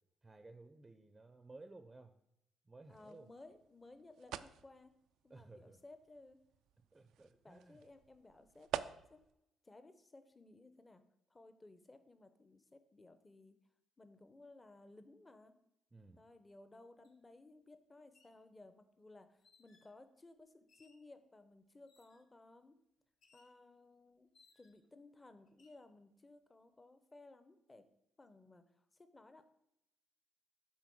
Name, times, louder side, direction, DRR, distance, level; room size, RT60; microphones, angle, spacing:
voice 1, 0.2-2.1 2.7-3.3 5.3-5.8 6.9-7.8 15.9-16.2, right 2 dB, 20° right, 9 dB, 0.5 m, -57 dB
voice 2, 2.9-4.9 5.2-6.4 7.4-8.7 9.1-9.3 9.6-11.0 11.3-13.6 14.0-15.6 16.2-22.7 23.3-24.3 24.6-27.9 28.2-29.5, left 2 dB, 20° left, 10 dB, 0.7 m, -59 dB
sound 1, 2.9-9.3, right 10 dB, 85° right, 0.3 m, -49 dB
sound 2, 17.0-17.2 18.0-18.4 19.4-20.0 20.7-21.1 21.9-22.3 23.2-23.6 24.3-24.9 25.5-25.8, left 4 dB, 65° left, 1.3 m, -70 dB
8.1 x 3.8 x 6.2 m, 0.83 s
cardioid pair, 90°, 0 cm